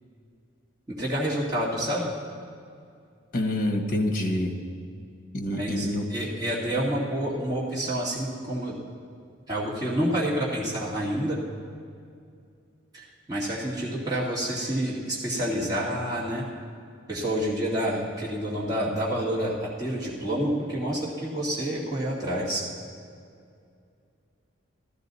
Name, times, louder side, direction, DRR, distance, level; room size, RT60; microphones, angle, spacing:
voice 1, 0.9-2.1 5.5-8.8 9.5-11.4 12.9-16.4 17.1-22.6, equal, 20° right, -8 dB, 2.2 m, -28 dB
voice 2, 3.3-4.5 5.3-6.1, left 1 dB, 45° left, 4 dB, 1.2 m, -26 dB
14.0 x 14.0 x 4.1 m, 2.4 s
head